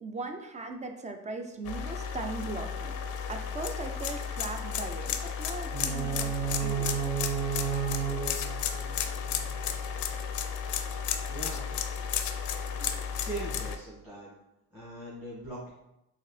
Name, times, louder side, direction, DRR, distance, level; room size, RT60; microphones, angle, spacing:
voice 1, 0.0-2.9 3.3-7.0, right 3 dB, 20° right, 5 dB, 0.5 m, -39 dB
sound 1, 1.6-13.8, left 7 dB, 60° left, 0.5 m, -33 dB
sound 2, 5.7-9.7, right 9 dB, 55° right, 1.3 m, -33 dB
voice 2, 11.3-11.7 12.7-14.3 14.7-15.7, right 2 dB, 5° right, -8 dB, 1.3 m, -41 dB
4.0 x 2.9 x 3.2 m, 0.85 s
cardioid pair, 100°, 34 cm